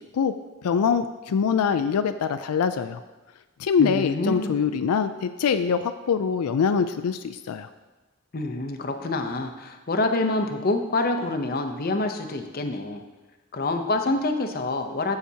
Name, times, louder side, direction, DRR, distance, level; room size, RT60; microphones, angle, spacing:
voice 1, 0.6-3.0 3.6-7.7, left 6 dB, 90° left, 10 dB, 0.4 m, -24 dB
voice 2, 3.8-4.6 8.3-13.0 13.5-15.2, left 2 dB, 40° left, 5 dB, 0.7 m, -26 dB
14.5 x 5.8 x 2.8 m, 1.2 s
head